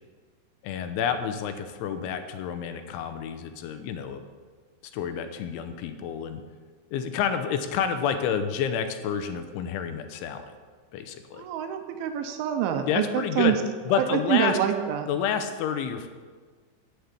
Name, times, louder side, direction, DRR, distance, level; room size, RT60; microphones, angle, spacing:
voice 1, 0.6-4.2 4.9-6.4 6.9-10.4 10.9-11.5 12.9-13.6 13.9-14.6 15.1-16.1, left 8 dB, 80° left, 8 dB, 3.2 m, -29 dB
voice 2, 11.3-13.1 13.4-13.5 14.0-15.1, right 10 dB, 80° right, 6 dB, 3.2 m, -26 dB
11.5 x 8.1 x 8.4 m, 1.5 s
omnidirectional pair, 5.5 m